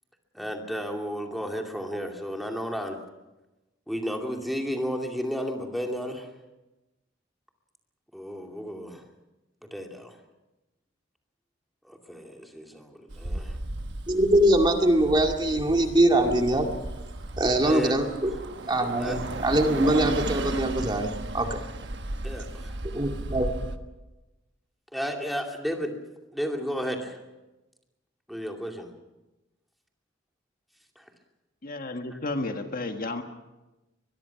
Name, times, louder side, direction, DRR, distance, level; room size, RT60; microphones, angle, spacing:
voice 1, 0.3-3.0 3.9-6.3 8.1-9.0 9.6-10.2 11.8-13.6 17.6-18.0 19.0-19.2 22.2-22.8 24.9-26.0 26.3-27.2 28.3-28.9 31.0-31.1 32.1-32.2, equal, ahead, 2 dB, 2.5 m, -33 dB
Bus, 13.1-23.8, right 2 dB, 60° right, 1.3 m, -35 dB
voice 2, 14.1-16.7 17.4-21.1 21.3-21.6 22.9-23.5, right 1 dB, 25° right, 3 dB, 2.1 m, -23 dB
voice 3, 31.6-33.2, left 2 dB, 45° left, 5 dB, 1.6 m, -32 dB
23.5 x 22.0 x 5.8 m, 1.0 s
head